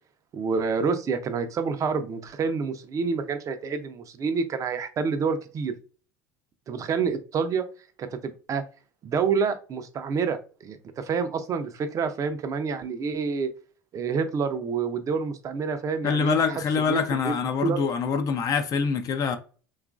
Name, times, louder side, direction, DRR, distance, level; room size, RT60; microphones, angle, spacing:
voice 1, 0.3-5.7 6.7-7.6 8.0-8.6 9.0-13.5 13.9-16.6 16.9-17.3 17.6-17.8, right 5 dB, 40° right, 0.5 m, -28 dB
voice 2, 16.0-19.4, left 6 dB, 45° left, 0.5 m, -25 dB
2.9 x 2.4 x 2.4 m
supercardioid pair, 90°, 9 cm